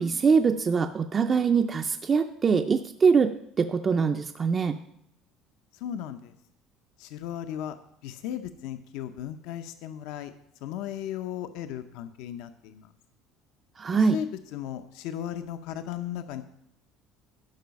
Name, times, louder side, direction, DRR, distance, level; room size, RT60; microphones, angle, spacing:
voice 1, 0.0-4.8 13.8-14.2, right 5 dB, 25° right, 7 dB, 0.4 m, -23 dB
voice 2, 5.7-6.3 7.0-7.8 8.0-10.3 10.6-12.9 14.0-16.4, left 10 dB, 75° left, 9 dB, 0.6 m, -36 dB
11.5 x 5.6 x 5.2 m, 0.75 s
cardioid pair, 145°, 0 cm